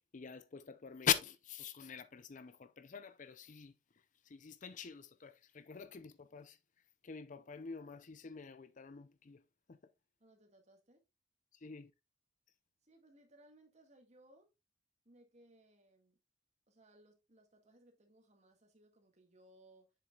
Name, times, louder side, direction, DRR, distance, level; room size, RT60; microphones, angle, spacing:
voice 1, 0.1-3.7 4.3-6.6 7.0-9.4 9.7-9.8 11.6-11.9, left 8 dB, 45° left, 0.5 m, -42 dB
voice 2, 10.2-11.0 12.8-14.5 15.1-16.2 16.7-19.9, right 1 dB, 40° right, 1.8 m, -65 dB
7.5 x 6.7 x 2.3 m
head